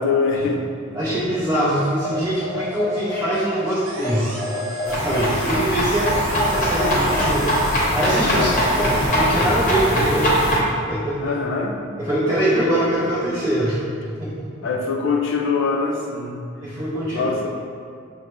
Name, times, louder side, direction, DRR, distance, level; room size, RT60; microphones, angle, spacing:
voice 1, 0.0-1.0 4.6-5.6 8.2-8.6 11.2-11.8 14.6-16.8 17.1-17.5, left 4 dB, 65° left, 1 dB, 0.5 m, -24 dB
voice 2, 0.9-4.4 5.0-6.1 6.5-8.5 8.8-10.3 10.9-11.3 12.0-14.5 16.6-17.5, right 1 dB, 20° right, -9 dB, 0.5 m, -23 dB
sound 1, 1.5-9.4, left 1 dB, 10° left, 0.9 m, -30 dB
sound 2, 3.9-5.7 5.9-9.1, right 2 dB, 80° right, 0.5 m, -35 dB
sound 3, 4.9-10.6, equal, 40° left, 0.9 m, -21 dB
6.3 x 2.1 x 2.9 m, 2.2 s
head